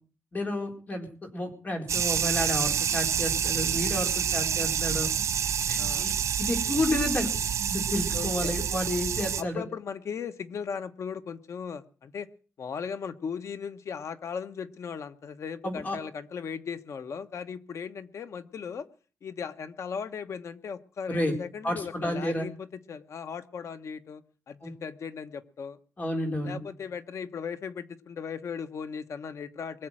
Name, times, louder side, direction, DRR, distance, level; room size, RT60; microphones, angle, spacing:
voice 1, 0.3-1.1 1.3-5.1 5.7-6.1 6.4-7.3 7.7-9.6 15.6-16.0 21.1-21.3 21.6-22.5 24.6-24.7 26.0-26.6, left 1 dB, 35° left, 4 dB, 4.2 m, -30 dB
sound 1, 1.9-9.4, right 8 dB, 85° right, 1.1 m, -28 dB
voice 2, 5.8-6.1 8.1-8.5 9.4-12.3 12.6-18.9 19.2-25.8 26.4-29.9, left 6 dB, 75° left, 11 dB, 1.1 m, -37 dB
22.0 x 7.6 x 7.5 m, 0.40 s
wide cardioid pair, 120°, 5 cm